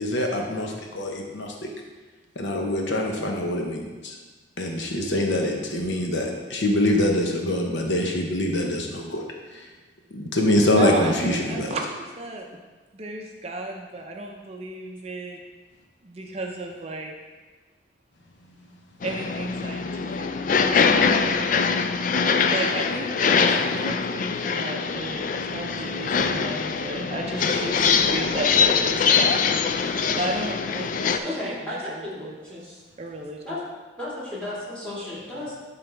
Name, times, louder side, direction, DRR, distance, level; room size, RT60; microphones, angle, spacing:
voice 1, 0.0-1.5 2.4-4.1 4.6-9.2 9.5-9.6 10.1-11.7, left 1 dB, 80° left, 1 dB, 1.0 m, -24 dB
voice 2, 10.7-12.5 12.9-15.4 16.0-17.1 19.0-20.7 22.5-29.4 29.8-32.3 33.0-33.4, right 2 dB, 35° right, 1 dB, 0.5 m, -33 dB
sound 1, 19.0-31.2, left 5 dB, 45° left, 0.3 m, -23 dB
voice 3, 31.2-32.8 33.4-33.6 34.0-35.5, left 1 dB, 5° left, -8 dB, 2.2 m, -34 dB
11.0 x 3.9 x 3.4 m, 1.3 s
head